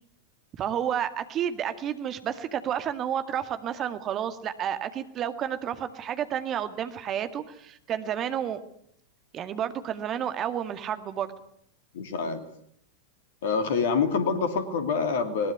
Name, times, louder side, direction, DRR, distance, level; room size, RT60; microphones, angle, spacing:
voice 1, 0.6-8.6 9.3-11.3, right 9 dB, 30° right, 10 dB, 2.0 m, -31 dB
voice 2, 11.9-12.4 13.4-15.5, left 5 dB, 55° left, 9 dB, 2.6 m, -26 dB
21.0 x 19.5 x 9.6 m, 0.70 s
figure-of-eight pair, 90°, 0 cm